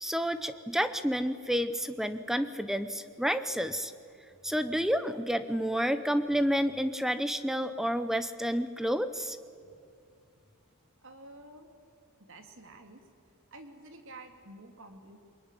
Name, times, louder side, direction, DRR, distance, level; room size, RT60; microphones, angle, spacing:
voice 1, 0.0-3.9 4.4-9.4, equal, ahead, 11 dB, 0.7 m, -30 dB
voice 2, 9.3-9.8 11.0-11.7 12.2-13.0 13.5-15.2, right 2 dB, 60° right, 6 dB, 2.6 m, -50 dB
23.0 x 21.0 x 9.9 m, 2.3 s
head